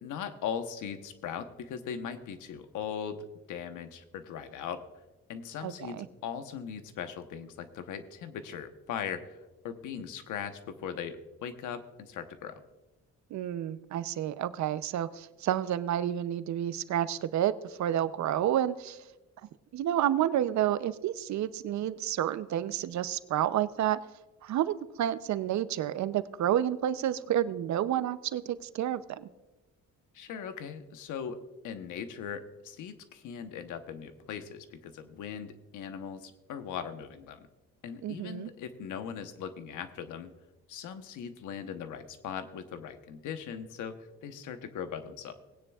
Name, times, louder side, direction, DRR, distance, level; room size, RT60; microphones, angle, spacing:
voice 1, 0.0-4.8 5.3-9.4 9.6-12.6 30.1-37.5 37.8-40.3 40.7-45.3, left 7 dB, 85° left, 9 dB, 1.1 m, -39 dB
voice 2, 5.6-6.1 13.3-19.0 19.7-24.0 24.4-29.3 38.0-38.5, right 11 dB, 65° right, 14 dB, 0.7 m, -30 dB
19.0 x 9.7 x 2.4 m, 1.1 s
cardioid pair, 90°, 30 cm